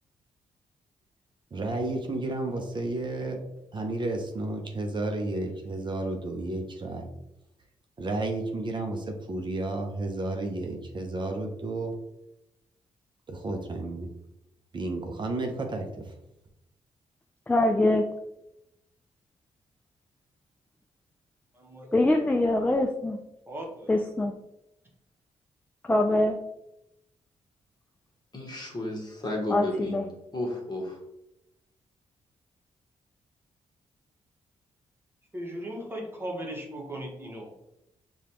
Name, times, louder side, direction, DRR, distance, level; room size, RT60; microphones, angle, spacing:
voice 1, 1.5-3.4 3.7-7.1 8.0-11.9 13.3-14.1 14.7-16.1, right 2 dB, 40° right, 3 dB, 0.6 m, -32 dB
voice 2, 17.5-18.0 21.9-23.2 23.9-24.3 25.8-26.4 29.5-30.0, left 1 dB, 10° left, 4 dB, 0.3 m, -23 dB
voice 3, 23.5-23.9 35.3-37.5, right 1 dB, 20° right, -1 dB, 1.1 m, -37 dB
voice 4, 28.3-30.0 30.3-31.0, left 1 dB, 35° left, 0 dB, 1.1 m, -32 dB
4.9 x 2.3 x 2.9 m, 0.85 s
cardioid pair, 75°, 12 cm